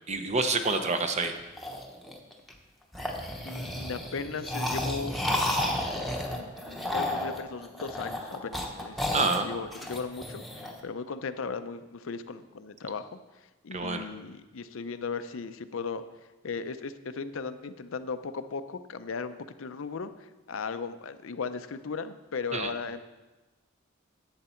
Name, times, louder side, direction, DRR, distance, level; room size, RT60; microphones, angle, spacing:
voice 1, 0.1-1.3 9.1-9.5 13.7-14.0 22.5-22.7, right 3 dB, 35° right, 7 dB, 0.8 m, -27 dB
sound 1, 0.6-2.5 2.9-10.8, left 1 dB, ahead, 1.0 m, -32 dB
voice 2, 3.4-5.2 6.3-13.2 13.6-16.0 16.4-23.0, left 5 dB, 80° left, 11 dB, 0.6 m, -37 dB
11.5 x 8.0 x 4.4 m, 1.1 s
head